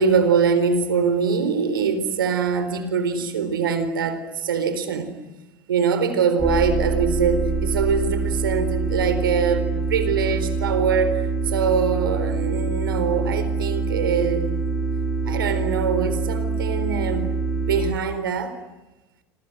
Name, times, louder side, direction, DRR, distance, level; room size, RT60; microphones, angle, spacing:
voice 1, 0.0-5.1 5.7-14.5 15.3-17.3 17.6-18.6, right 6 dB, 80° right, 11 dB, 4.3 m, -23 dB
sound 1, 6.4-17.9, right 4 dB, 5° left, 3.9 m, -25 dB
28.0 x 25.5 x 7.9 m, 1.0 s
hypercardioid pair, 80°, 11 cm